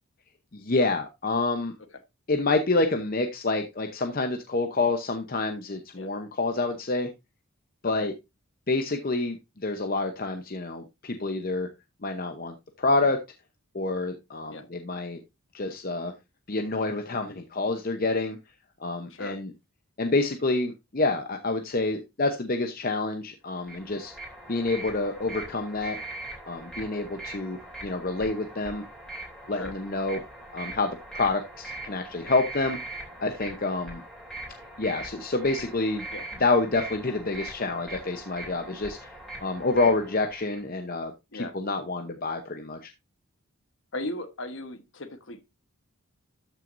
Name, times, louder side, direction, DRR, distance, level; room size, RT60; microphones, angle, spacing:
voice 1, 0.5-1.7 2.3-7.1 7.8-8.1 8.7-11.7 12.0-13.2 13.7-15.2 15.5-16.1 16.5-18.4 18.8-19.5 20.0-24.1 24.5-26.0 26.5-28.8 29.5-30.2 30.5-32.8 33.2-34.0 34.8-36.0 36.4-42.9, left 3 dB, 40° left, 0.8 m, -28 dB
sound 1, 23.5-40.6, right 2 dB, 5° left, 3.0 m, -41 dB
voice 2, 43.9-45.4, left 2 dB, 55° left, 1.2 m, -36 dB
13.0 x 6.1 x 2.6 m
head